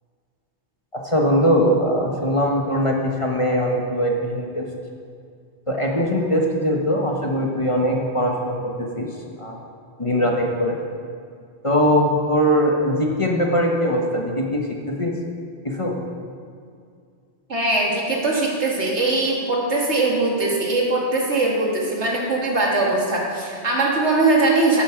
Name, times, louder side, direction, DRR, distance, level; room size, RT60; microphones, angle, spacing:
voice 1, 0.9-4.7 5.7-9.1 9.4-9.6 10.0-10.8 11.6-15.1 15.6-16.0, equal, 30° left, 0 dB, 1.2 m, -21 dB
voice 2, 17.5-24.8, right 2 dB, 80° right, -2 dB, 2.4 m, -21 dB
11.0 x 9.0 x 6.0 m, 2.3 s
omnidirectional pair, 1.1 m